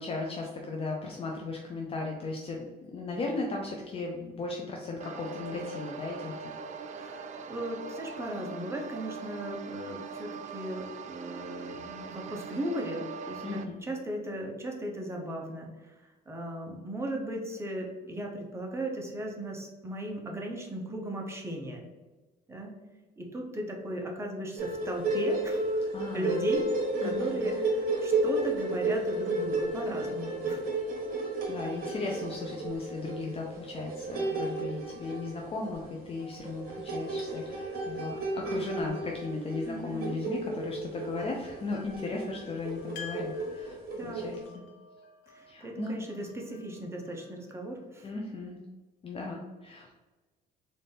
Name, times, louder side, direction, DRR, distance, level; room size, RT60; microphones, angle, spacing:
voice 1, 0.0-6.5 13.4-13.8 25.8-26.5 27.0-27.4 31.5-44.6 45.5-45.9 48.0-48.6 49.0-50.0, left 3 dB, 35° left, 0 dB, 0.5 m, -36 dB
sound 1, 5.0-13.6, right 5 dB, 45° right, 0.4 m, -41 dB
voice 2, 6.9-21.8 22.5-22.7 23.2-25.9 26.1-26.7 27.0-30.6 39.7-40.2 43.9-44.3 45.3-48.1, right 1 dB, 15° right, 0 dB, 0.9 m, -37 dB
sound 2, 24.6-44.4, right 2 dB, 65° right, 1.1 m, -33 dB
sound 3, 41.2-48.1, left 6 dB, 90° left, 0.8 m, -50 dB
4.1 x 2.6 x 3.5 m, 1.2 s
cardioid pair, 110°, 17 cm